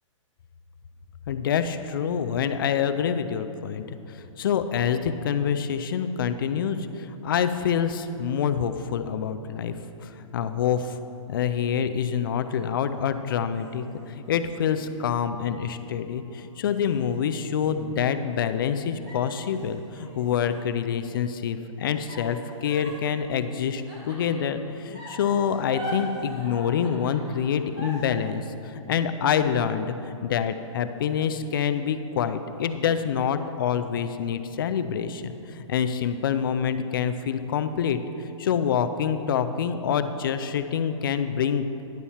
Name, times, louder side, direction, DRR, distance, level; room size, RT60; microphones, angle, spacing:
voice 1, 1.3-11.0 11.3-41.8, left 7 dB, 40° left, 10 dB, 0.4 m, -26 dB
sound 1, 11.5-12.8 13.5-15.7 16.2-16.3 16.7-18.7 19.1-21.1 22.1-24.6 24.9-28.1, equal, 25° right, 1.8 m, -42 dB
10.5 x 4.2 x 7.2 m, 2.9 s
hypercardioid pair, 165°, 17 cm